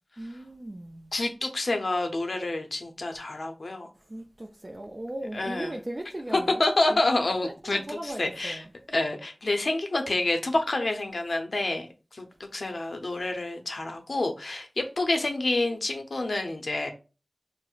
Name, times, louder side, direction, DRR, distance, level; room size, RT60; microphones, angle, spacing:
voice 1, 0.2-1.1 4.1-7.0 7.4-8.7, right 1 dB, 40° right, 0.4 m, -38 dB
voice 2, 1.1-3.9 5.3-5.7 6.3-11.9 12.1-12.3 12.5-16.9, left 2 dB, 75° left, 0.5 m, -28 dB
4.4 x 2.0 x 2.3 m
wide cardioid pair, 40°, 0 cm